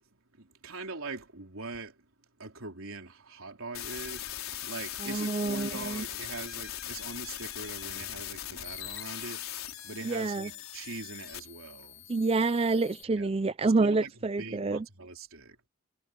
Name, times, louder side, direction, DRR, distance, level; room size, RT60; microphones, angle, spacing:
voice 1, 0.4-2.0 2.4-12.1 13.2-13.3 13.6-14.1 14.4-15.6, right 3 dB, 85° right, 3.6 m, -42 dB
sound 1, 3.7-13.0, left 12 dB, 85° left, 4.7 m, -40 dB
voice 2, 5.0-6.1 10.0-10.5 12.1-14.9, right 3 dB, 30° right, 0.4 m, -28 dB
head